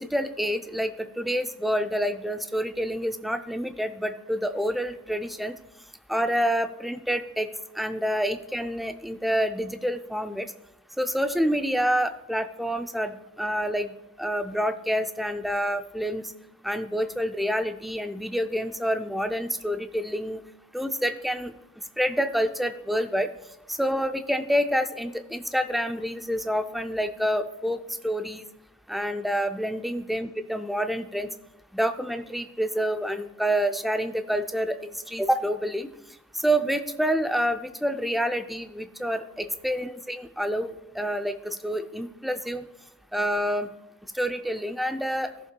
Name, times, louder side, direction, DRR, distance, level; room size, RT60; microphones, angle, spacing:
voice 1, 0.0-5.6 6.1-7.5 7.8-10.5 11.0-16.3 16.6-20.4 20.7-21.5 22.0-23.3 23.7-28.5 28.9-31.3 31.7-35.9 36.4-42.6 43.1-43.7 44.1-45.3, equal, ahead, 8 dB, 0.3 m, -28 dB
14.5 x 7.1 x 2.2 m, 0.90 s
head